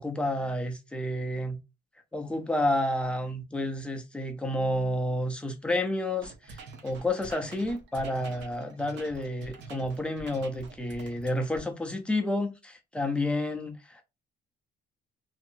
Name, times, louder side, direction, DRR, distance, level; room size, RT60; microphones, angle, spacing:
voice 1, 0.0-1.6 2.1-14.0, left 1 dB, 5° left, 0.5 m, -30 dB
sound 1, 6.2-11.6, right 3 dB, 70° right, 0.7 m, -46 dB
2.7 x 2.5 x 2.5 m
cardioid pair, 170°, 19 cm